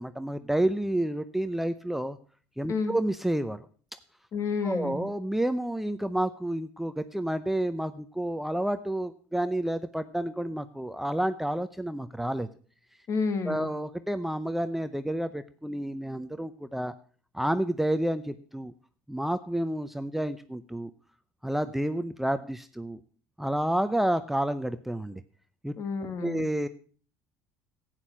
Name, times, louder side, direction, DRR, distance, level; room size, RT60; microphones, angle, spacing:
voice 1, 0.0-2.2 2.6-3.7 4.6-12.5 13.4-16.9 17.3-18.7 19.1-20.9 21.4-23.0 23.4-25.2 25.6-25.8 26.2-26.7, right 1 dB, 5° right, 10 dB, 0.6 m, -30 dB
voice 2, 4.3-5.1 13.1-13.7 25.8-26.5, left 4 dB, 45° left, 10 dB, 1.7 m, -30 dB
11.0 x 9.1 x 6.1 m, 0.43 s
supercardioid pair, 95°, 7 cm